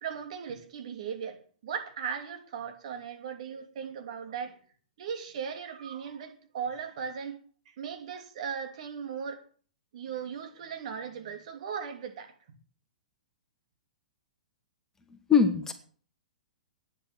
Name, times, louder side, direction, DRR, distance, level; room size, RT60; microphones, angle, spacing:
voice 1, 0.0-4.6 5.0-7.4 7.7-9.4 9.9-12.3, right 7 dB, 55° right, 2.8 m, -38 dB
voice 2, 15.1-15.7, left 6 dB, 10° left, 2.1 m, -23 dB
11.5 x 9.8 x 7.2 m
hypercardioid pair, 115°, 4 cm